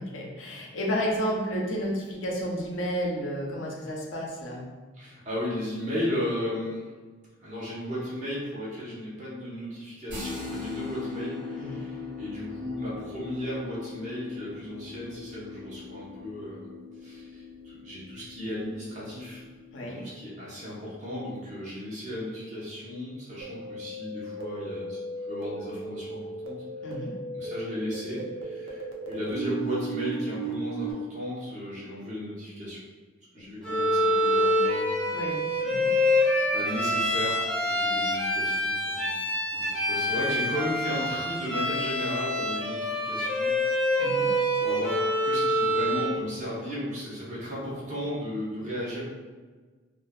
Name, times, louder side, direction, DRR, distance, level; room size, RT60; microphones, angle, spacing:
voice 1, 0.0-4.7 11.6-11.8 19.7-20.1 26.8-27.1 33.3-33.5 35.1-35.9 44.0-44.3, equal, 85° left, -2 dB, 0.6 m, -32 dB
voice 2, 4.9-6.9 7.4-16.7 17.0-19.4 19.8-25.0 25.3-26.6 26.9-27.0 27.3-32.8 33.3-35.3 35.7-36.1 36.5-39.2 39.5-43.5 44.2-49.0, left 1 dB, 40° right, -7 dB, 0.8 m, -35 dB
sound 1, 10.1-19.7, left 4 dB, 65° right, 0.9 m, -40 dB
sound 2, 23.4-30.9, right 3 dB, 85° right, 0.5 m, -36 dB
Bowed string instrument, 33.6-46.2, left 1 dB, 5° left, 0.3 m, -26 dB
2.5 x 2.4 x 2.3 m, 1.4 s
head